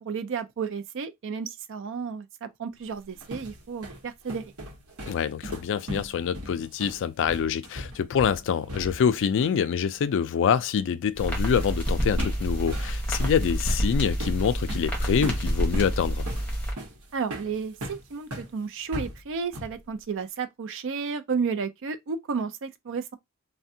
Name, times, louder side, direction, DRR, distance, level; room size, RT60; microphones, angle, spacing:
voice 1, 0.0-4.5 17.1-23.1, right 5 dB, 60° right, 0.4 m, -32 dB
sound 1, 2.9-9.2 9.4-9.6 11.6-11.8 12.2-18.5 18.9-19.8, equal, 75° right, 1.0 m, -38 dB
voice 2, 5.1-16.2, left 7 dB, 55° left, 0.3 m, -26 dB
sound 2, 11.2-16.7, equal, 5° left, 1.0 m, -28 dB
3.3 x 2.2 x 2.7 m
head